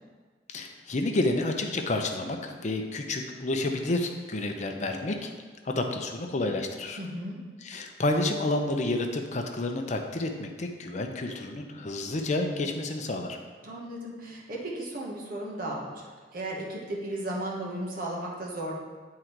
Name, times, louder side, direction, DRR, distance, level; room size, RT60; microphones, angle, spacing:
voice 1, 0.5-5.3 5.6-7.0 7.6-13.4, left 2 dB, 40° left, 3 dB, 0.6 m, -30 dB
voice 2, 7.0-7.4 13.6-16.1 16.3-18.7, right 1 dB, 50° right, -3 dB, 1.4 m, -35 dB
9.3 x 3.8 x 4.5 m, 1.5 s
head